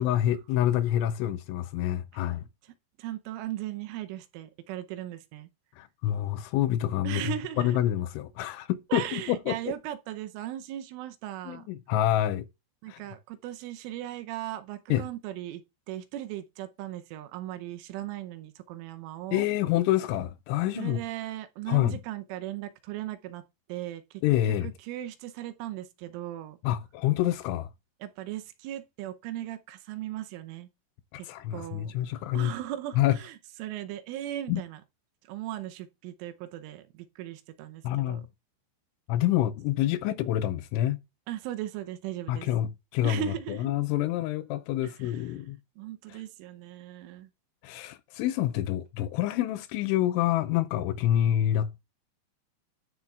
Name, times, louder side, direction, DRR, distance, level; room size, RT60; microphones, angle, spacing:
voice 1, 0.0-2.5 5.8-9.6 11.5-12.5 12.9-13.0 14.9-15.1 19.3-21.0 21.7-22.0 24.2-24.7 26.6-27.7 31.1-32.5 33.0-33.2 34.5-34.6 37.8-38.3 39.1-41.0 42.3-43.2 43.5-45.6 46.1-46.2 47.6-51.8, left 12 dB, 80° left, 2.9 m, -27 dB
voice 2, 3.0-5.5 7.0-7.8 8.9-11.7 12.8-19.4 20.8-23.4 23.7-24.2 24.5-26.6 28.0-30.7 31.2-34.8 35.2-38.2 41.3-42.5 43.0-43.7 44.8-45.2 45.8-47.3, right 13 dB, 80° right, 3.2 m, -38 dB
13.5 x 8.4 x 2.4 m
omnidirectional pair, 5.7 m